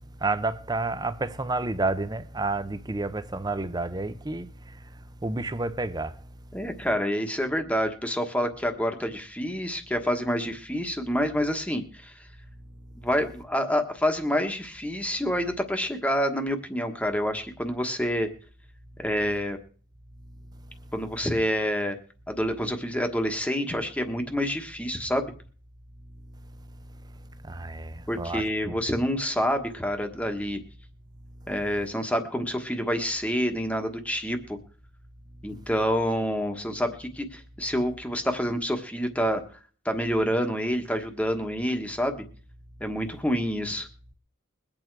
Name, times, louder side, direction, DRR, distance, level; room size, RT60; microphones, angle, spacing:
voice 1, 0.2-4.9 5.2-6.3 12.9-13.0 20.8-20.9 26.3-28.7, right 2 dB, 20° right, 0.7 m, -31 dB
voice 2, 6.5-12.2 13.0-18.3 19.0-19.6 20.9-22.0 22.3-25.3 28.1-30.6 31.5-34.6 35.4-39.4 39.8-42.2 42.8-43.9, equal, 5° left, 1.3 m, -27 dB
21.5 x 8.8 x 4.7 m
head